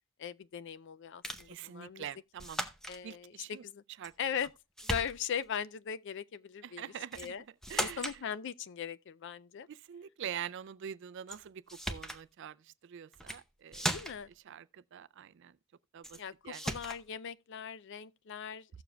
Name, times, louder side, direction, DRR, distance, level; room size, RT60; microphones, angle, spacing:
voice 1, 0.2-2.1 2.9-3.8 4.2-4.5 4.8-7.4 7.8-9.7 13.8-14.3 16.2-18.7, left 7 dB, 55° left, 0.4 m, -39 dB
sound 1, 1.2-1.5 2.4-3.0 4.0-4.5 4.8-5.5 7.1-7.3 7.6-8.2 11.3-11.4 11.7-12.2 13.1-13.4 13.7-14.3 16.0-16.2 16.5-17.0, equal, ahead, 0.7 m, -37 dB
voice 2, 1.5-2.6 3.0-3.6 4.0-4.1 6.6-7.3 7.7-8.1 9.7-11.6 11.9-12.6 12.8-13.9 14.5-15.5 15.9-16.2 16.4-16.6, right 9 dB, 55° right, 0.4 m, -44 dB
16.0 x 7.0 x 2.3 m
head